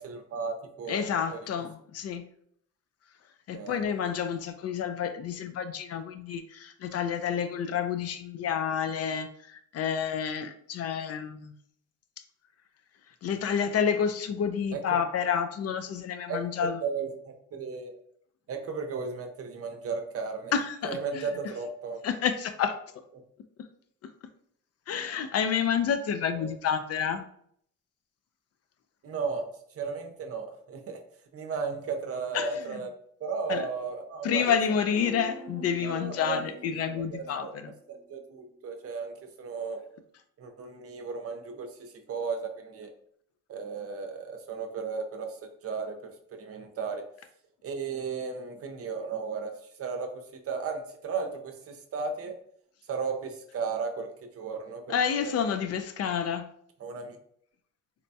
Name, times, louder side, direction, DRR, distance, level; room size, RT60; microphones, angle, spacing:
voice 1, 0.0-1.4 3.5-3.8 14.7-15.0 15.2-15.3 16.3-17.9 18.5-20.5 20.8-22.0 26.3-26.5 29.0-29.5 29.7-31.0 31.3-32.9 33.2-34.6 35.8-36.4 36.8-37.5 37.9-39.8 40.4-42.9 43.5-47.0 47.6-49.5 49.8-52.3 52.9-54.9 55.2-55.3 56.8-57.2, right 5 dB, 50° right, 5 dB, 0.6 m, -35 dB
voice 2, 0.9-2.2 3.5-11.5 13.2-16.8 20.5-21.2 22.0-22.8 24.9-27.3 32.3-32.8 33.5-33.7 34.2-37.7 54.9-56.5, left 7 dB, 55° left, 9 dB, 0.4 m, -29 dB
sound 1, 34.9-38.2 38.5-38.6, right 1 dB, 15° right, 0.9 m, -45 dB
4.1 x 2.2 x 2.6 m, 0.66 s
cardioid pair, 90°, 30 cm